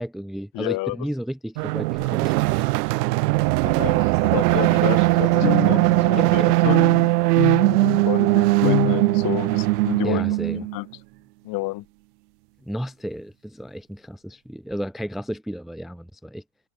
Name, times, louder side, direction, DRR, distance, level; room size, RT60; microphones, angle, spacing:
voice 1, 0.0-2.7 6.2-6.6 10.0-10.7 12.6-16.4, equal, ahead, 0.8 m, -33 dB
voice 2, 0.5-1.0 3.6-6.8 8.0-10.2 10.5-10.9 11.4-11.9, left 21 dB, 45° left, 2.1 m, -30 dB
sound 1, 1.6-10.8, right 21 dB, 75° right, 0.7 m, -20 dB
sound 2, 4.6-9.8, left 18 dB, 85° left, 0.8 m, -29 dB
supercardioid pair, 130°, 48 cm